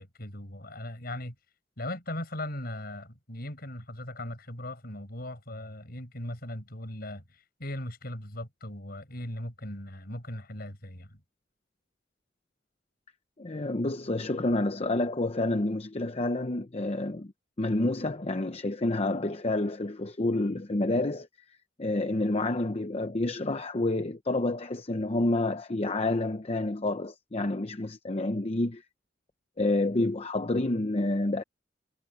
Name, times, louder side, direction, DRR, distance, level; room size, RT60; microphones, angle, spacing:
voice 1, 0.0-1.4 1.8-11.2, left 1 dB, 55° left, 7.3 m, -39 dB
voice 2, 13.4-17.3 17.6-21.3 21.8-28.8 29.6-31.4, left 2 dB, 35° left, 0.8 m, -29 dB
head